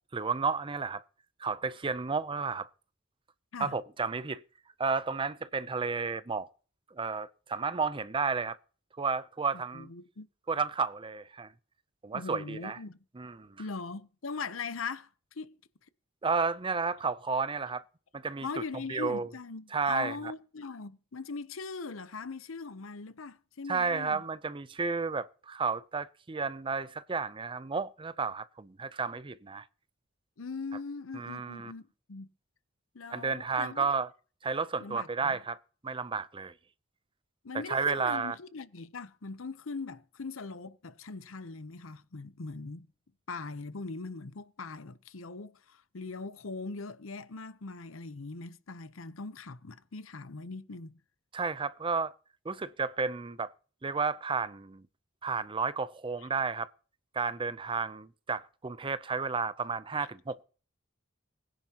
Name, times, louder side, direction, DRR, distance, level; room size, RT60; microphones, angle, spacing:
voice 1, 0.1-1.0 1.4-2.7 3.6-4.4 4.8-6.5 6.9-8.6 9.0-9.9 10.5-11.5 12.0-12.8 13.2-13.6 16.2-17.8 18.1-18.5 18.9-19.3 19.7-20.2 23.7-29.7 31.1-31.7 33.1-34.1 34.4-35.6 35.8-36.5 37.7-38.4 51.3-52.1 52.4-53.5 53.8-54.8 55.2-56.7 57.1-60.4, right 4 dB, 25° right, 0.5 m, -32 dB
voice 2, 9.7-10.3 12.1-13.0 13.6-15.6 18.4-24.2 30.4-31.8 32.1-32.3 32.9-33.9 34.8-35.4 37.4-42.9 43.3-51.0 56.2-56.3, left 4 dB, 80° left, 0.8 m, -40 dB
20.0 x 10.5 x 2.9 m
head